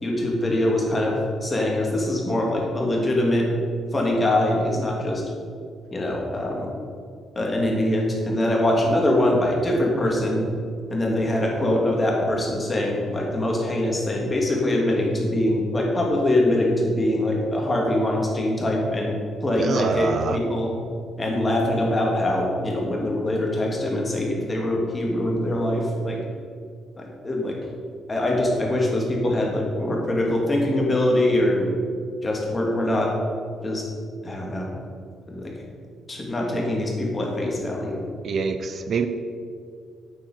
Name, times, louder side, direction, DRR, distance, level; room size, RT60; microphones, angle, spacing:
voice 1, 0.0-3.5 3.9-5.2 5.9-6.7 7.3-10.4 10.9-20.7 21.2-26.2 27.0-27.6 28.1-31.7 32.2-33.1 33.6-33.9 34.2-34.7 35.3-35.6 36.1-38.0, left 1 dB, 25° left, -1 dB, 2.8 m, -23 dB
voice 2, 19.6-20.4 38.2-39.1, right 5 dB, 55° right, 8 dB, 0.7 m, -25 dB
9.1 x 7.6 x 6.6 m, 2.2 s
cardioid pair, 90°, 0 cm